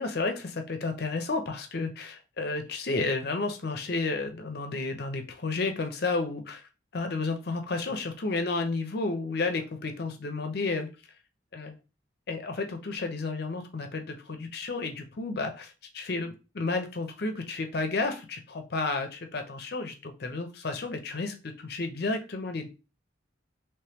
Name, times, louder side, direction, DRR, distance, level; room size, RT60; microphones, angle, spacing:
voice 1, 0.0-6.6 6.9-10.9 11.5-11.8 12.3-22.7, left 3 dB, 55° left, 6 dB, 0.6 m, -32 dB
3.1 x 2.9 x 3.4 m, 0.30 s
head